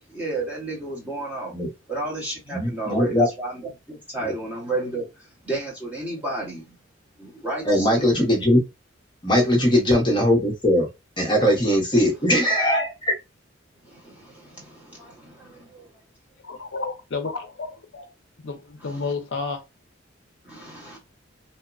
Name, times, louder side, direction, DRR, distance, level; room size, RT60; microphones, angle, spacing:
voice 1, 0.1-1.5 1.9-3.5 3.9-6.7 7.2-8.1 13.8-15.9 18.8-19.1 20.4-21.0, right 2 dB, 5° right, 1.0 m, -32 dB
voice 2, 2.5-3.3 4.2-4.3 7.6-8.6 9.2-10.9 11.2-13.1, left 1 dB, 25° left, 0.7 m, -20 dB
voice 3, 16.4-18.0 18.4-19.6, left 4 dB, 60° left, 0.5 m, -31 dB
2.9 x 2.1 x 2.4 m
head